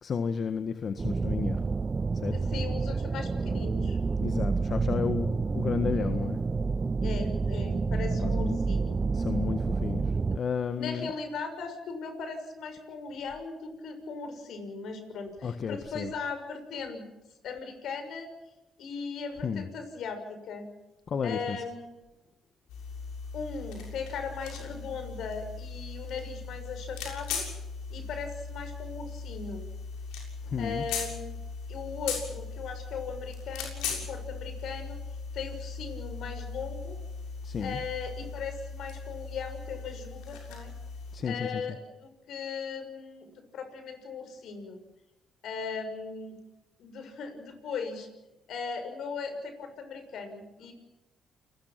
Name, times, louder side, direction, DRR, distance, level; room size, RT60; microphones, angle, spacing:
voice 1, 0.0-1.6 2.2-2.4 4.2-6.4 8.2-8.6 9.1-11.1 15.4-16.1 19.4-19.7 21.1-21.6 30.5-30.8 37.4-37.8 41.1-41.6, left 6 dB, 55° left, 9 dB, 1.6 m, -32 dB
sound 1, 1.0-10.4, right 4 dB, 35° right, 0.9 m, -29 dB
voice 2, 2.3-4.0 7.0-9.0 10.8-17.1 17.4-18.3 18.8-20.7 21.2-22.0 23.3-27.4 27.9-29.6 30.6-31.4 31.7-35.0 35.3-37.0 37.6-40.7 41.2-44.8 45.4-46.4 46.8-48.1 48.5-50.7, left 5 dB, 70° left, 7 dB, 6.5 m, -38 dB
sound 2, 22.7-41.2, left 5 dB, 90° left, 6.9 m, -39 dB
29.5 x 20.5 x 6.0 m, 1.0 s
supercardioid pair, 65°, 0 cm